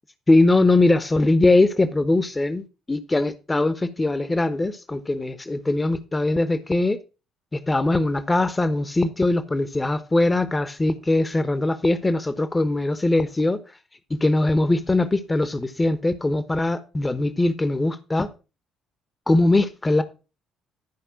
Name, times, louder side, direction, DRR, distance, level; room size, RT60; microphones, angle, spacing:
voice 1, 0.3-7.0 7.5-13.6 14.1-18.3 19.3-20.0, left 2 dB, 20° left, 1.1 m, -21 dB
12.5 x 5.3 x 6.0 m
figure-of-eight pair, 45°, 0 cm